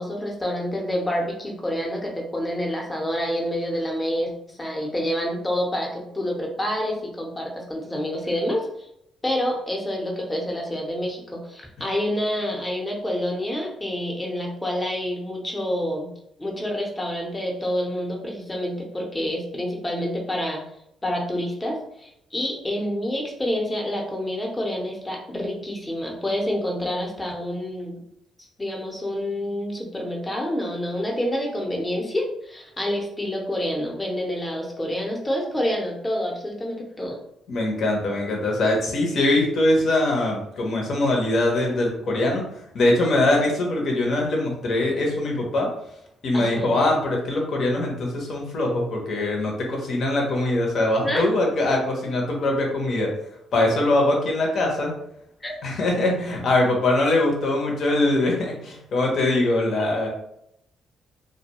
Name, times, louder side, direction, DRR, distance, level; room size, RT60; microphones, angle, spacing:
voice 1, 0.0-8.9 9.2-16.1 16.4-20.6 21.0-28.0 28.6-37.2 46.3-46.7 51.0-51.2 55.4-55.5, equal, 15° left, -1 dB, 0.7 m, -28 dB
voice 2, 37.5-42.4 42.7-45.7 46.2-53.1 53.5-54.9 55.6-60.1, left 2 dB, 60° left, 0 dB, 0.8 m, -22 dB
2.2 x 2.2 x 2.9 m, 0.78 s
cardioid pair, 75°, 0 cm